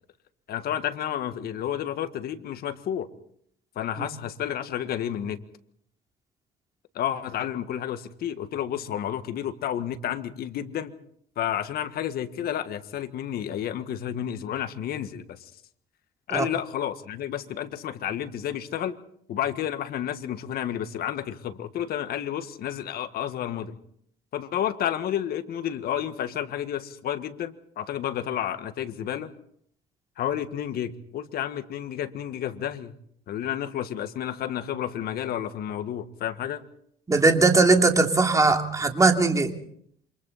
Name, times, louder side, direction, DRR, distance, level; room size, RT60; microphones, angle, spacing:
voice 1, 0.5-3.1 3.7-5.4 6.9-10.9 11.3-15.5 16.3-19.0 19.3-23.8 24.3-29.3 30.2-32.9 33.3-36.6, left 10 dB, 65° left, 10 dB, 1.6 m, -31 dB
voice 2, 37.1-39.5, right 3 dB, 20° right, 4 dB, 2.9 m, -20 dB
28.0 x 25.5 x 4.2 m, 0.65 s
cardioid pair, 110°, 17 cm